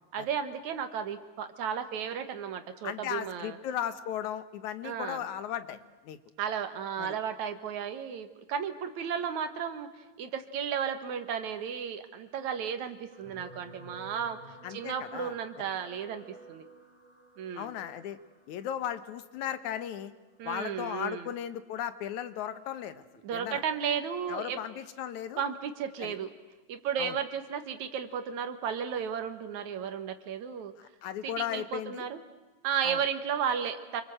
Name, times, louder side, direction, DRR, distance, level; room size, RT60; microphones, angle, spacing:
voice 1, 0.1-3.6 4.8-5.2 6.4-9.9 10.2-16.7 17.4-17.8 20.4-21.3 23.2-24.6 25.4-26.3 26.7-30.7 31.2-32.2 32.6-34.0, right 7 dB, 75° right, 9 dB, 2.8 m, -34 dB
voice 2, 2.8-6.2 7.0-7.2 14.6-15.3 17.6-18.2 18.5-20.1 20.4-23.0 23.3-23.6 24.3-25.4 26.0-26.2 27.0-27.2 31.0-32.1 32.8-33.0, left 10 dB, 80° left, 12 dB, 2.5 m, -36 dB
sound 1, 13.1-21.6 22.3-22.6 22.8-22.9, right 2 dB, 5° left, 3.5 m, -53 dB
28.0 x 24.0 x 7.8 m, 1.2 s
omnidirectional pair, 3.4 m